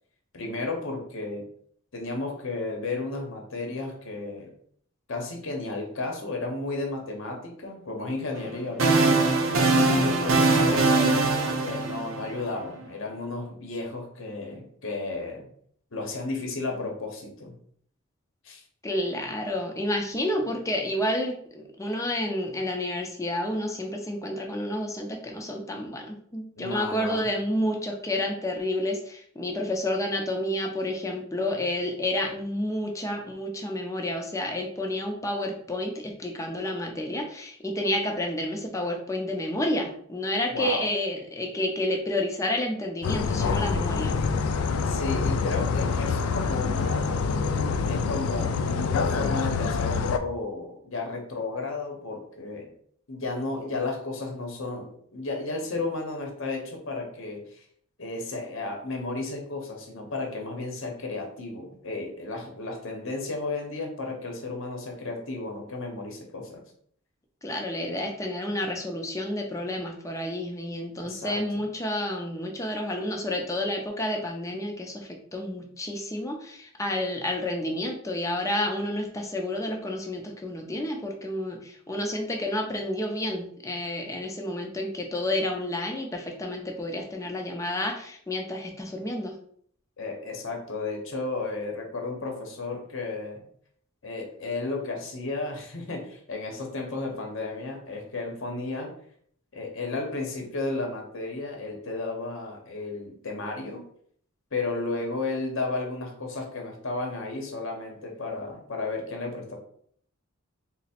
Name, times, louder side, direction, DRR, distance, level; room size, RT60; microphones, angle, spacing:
voice 1, 0.3-1.4 1.9-4.5 5.1-9.0 9.8-15.5 15.9-17.5 18.4-18.6 20.5-20.6 26.6-27.3 40.5-40.9 44.9-47.2 47.8-52.7 53.1-57.6 58.0-66.6 71.0-71.6 90.0-93.5 94.0-98.9 99.5-103.8 104.5-109.6, left 3 dB, 65° left, 2 dB, 0.8 m, -33 dB
sound 1, 8.4-12.6, right 3 dB, 65° right, 0.6 m, -22 dB
voice 2, 18.8-44.2 67.4-89.3, left 1 dB, 15° left, 1 dB, 0.5 m, -30 dB
sound 2, 43.0-50.2, left 5 dB, 85° left, 0.4 m, -26 dB
3.3 x 2.0 x 4.2 m, 0.62 s
head